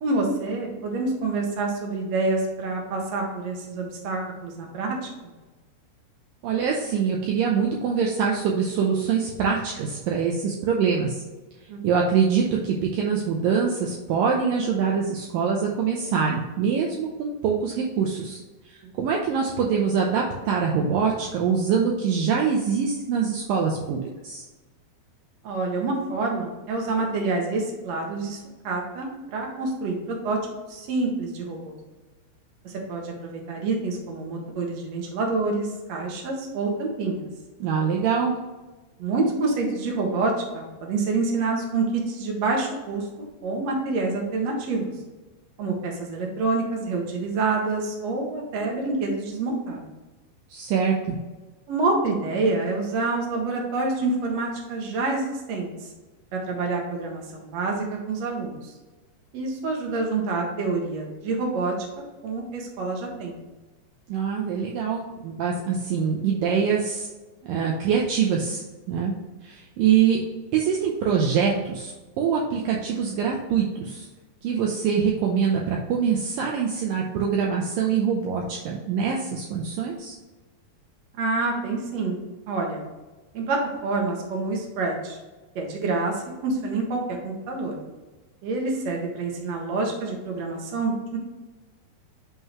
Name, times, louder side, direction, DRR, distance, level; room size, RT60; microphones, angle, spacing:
voice 1, 0.0-5.3 11.7-11.8 25.4-28.4 28.6-30.4 30.7-31.8 32.6-37.3 39.0-44.9 45.6-49.8 51.7-55.7 56.3-58.7 59.3-63.4 81.2-82.2 82.5-82.8 83.3-85.2 85.6-87.8 88.4-91.2, right 3 dB, 60° right, 0 dB, 1.9 m, -27 dB
voice 2, 6.4-11.2 11.8-18.4 18.7-24.4 37.6-38.4 50.5-51.2 64.1-67.1 67.4-68.6 68.9-69.1 69.4-70.2 70.5-74.1 74.4-80.1, right 6 dB, 80° right, -1 dB, 2.0 m, -24 dB
11.0 x 3.8 x 3.0 m, 1.2 s
omnidirectional pair, 4.8 m